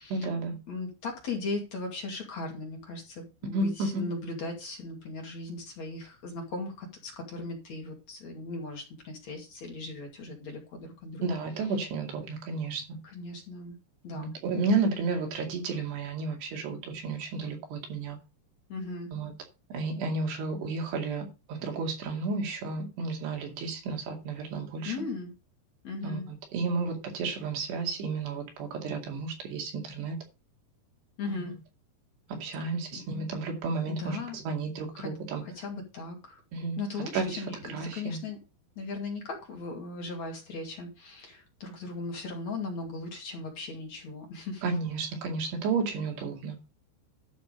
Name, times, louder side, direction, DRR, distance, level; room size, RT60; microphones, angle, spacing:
voice 1, 0.1-0.6 3.5-4.1 11.2-13.0 14.1-18.2 19.1-19.3 19.7-24.9 26.0-30.2 31.3-31.4 32.3-35.4 36.5-36.8 37.1-37.4 37.7-38.2 44.6-46.6, right 4 dB, 75° right, 4.5 m, -32 dB
voice 2, 0.7-11.3 13.0-13.8 14.0-14.3 18.7-19.1 24.9-25.3 25.8-26.2 31.2-31.5 32.6-33.0 33.9-34.4 34.9-35.1 35.4-36.4 36.8-38.4 38.8-44.6, left 3 dB, 45° left, 3.4 m, -38 dB
12.0 x 6.4 x 5.0 m
omnidirectional pair, 4.9 m